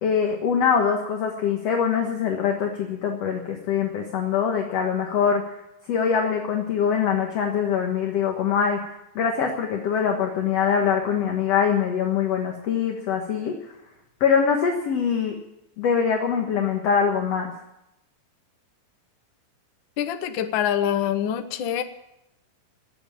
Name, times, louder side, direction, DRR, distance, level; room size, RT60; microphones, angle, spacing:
voice 1, 0.0-5.4 5.9-8.8 9.2-13.6 14.2-15.4 15.8-17.5, left 7 dB, 55° left, 2 dB, 2.3 m, -23 dB
voice 2, 20.0-21.8, left 10 dB, 75° left, 8 dB, 1.1 m, -25 dB
20.0 x 8.1 x 8.7 m, 0.88 s
omnidirectional pair, 3.8 m